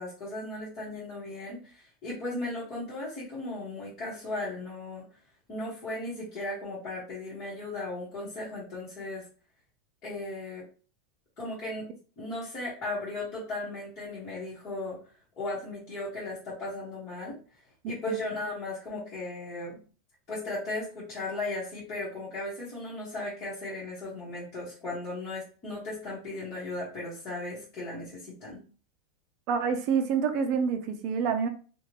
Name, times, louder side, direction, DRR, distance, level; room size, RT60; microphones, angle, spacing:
voice 1, 0.0-5.1 5.5-9.3 10.0-10.6 11.4-15.0 15.4-17.4 17.8-19.8 20.3-28.6, left 2 dB, 25° left, -8 dB, 1.3 m, -36 dB
voice 2, 17.8-18.2 29.5-31.5, right 6 dB, 40° right, 7 dB, 0.5 m, -27 dB
3.4 x 2.4 x 2.9 m, 0.38 s
supercardioid pair, 170°, 0 cm